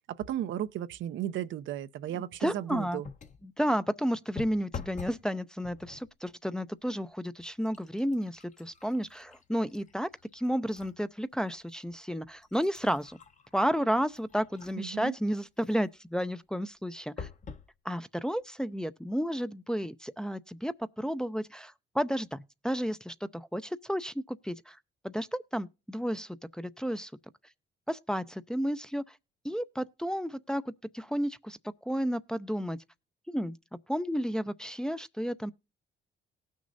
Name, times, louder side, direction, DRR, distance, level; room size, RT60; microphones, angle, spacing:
voice 1, 0.1-3.1 14.8-15.2, right 11 dB, 75° right, 0.6 m, -35 dB
voice 2, 2.1-3.0 3.4-13.2 13.5-17.3 17.8-24.8 25.0-27.1 27.9-29.2 29.4-31.6 31.8-32.8 33.3-33.6 33.9-35.5, equal, 5° left, 0.5 m, -32 dB
sound 1, 3.0-3.5 4.4-5.3 5.6-6.1 6.9-7.0 7.4-11.0 11.5-11.6 12.2-15.0 17.2-17.7 18.4-18.5 18.7-18.8, left 6 dB, 40° left, 0.9 m, -46 dB
18.5 x 6.3 x 2.6 m
cardioid pair, 90°, 20 cm